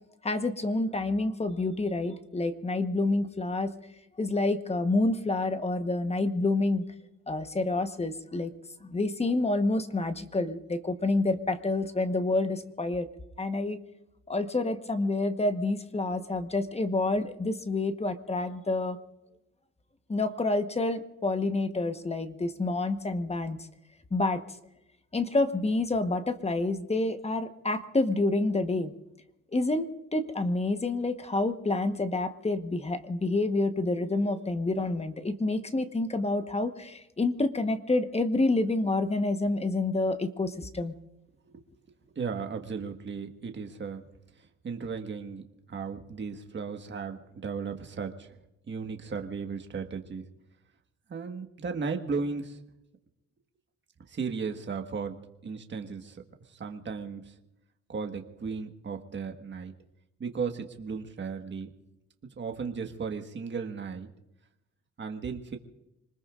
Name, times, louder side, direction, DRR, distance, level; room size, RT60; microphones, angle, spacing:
voice 1, 0.2-3.7 4.2-6.8 7.3-8.5 8.9-13.1 13.4-13.8 14.3-19.0 20.1-23.6 24.1-24.4 25.1-28.9 29.5-40.9, left 2 dB, 20° left, 9 dB, 1.2 m, -28 dB
voice 2, 42.1-44.0 44.4-45.4 45.7-48.3 48.7-50.2 51.1-52.6 54.1-55.1 55.4-56.2 56.5-57.3 57.9-59.7 60.2-61.7 62.4-64.1 65.0-65.6, right 5 dB, 40° right, 5 dB, 1.6 m, -35 dB
26.5 x 20.0 x 2.5 m, 0.91 s
cardioid pair, 90°, 30 cm